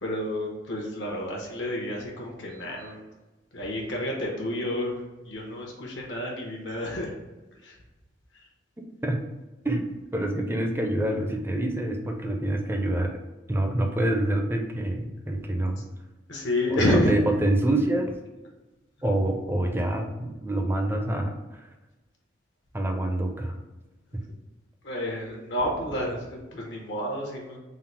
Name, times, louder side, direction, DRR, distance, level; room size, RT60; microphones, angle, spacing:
voice 1, 0.0-3.0 3.5-7.1 7.6-7.8 8.3-8.4 15.8-15.9 16.3-17.1 24.8-27.6, left 1 dB, 70° left, -1 dB, 0.8 m, -29 dB
voice 2, 9.6-13.1 13.5-15.8 16.7-18.1 19.0-21.7 22.7-23.5, right 1 dB, 10° right, 3 dB, 0.4 m, -26 dB
3.8 x 2.0 x 4.3 m, 1.1 s
head